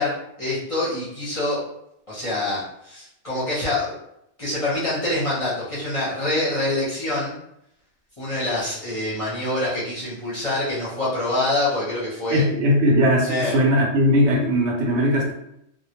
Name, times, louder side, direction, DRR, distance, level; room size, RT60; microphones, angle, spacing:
voice 1, 0.0-1.6 2.1-3.9 4.4-7.4 8.2-12.4 13.3-13.5, left 2 dB, 35° left, -9 dB, 0.7 m, -25 dB
voice 2, 12.3-15.3, equal, 70° right, -2 dB, 0.9 m, -19 dB
2.1 x 2.1 x 2.8 m, 0.79 s
omnidirectional pair, 1.3 m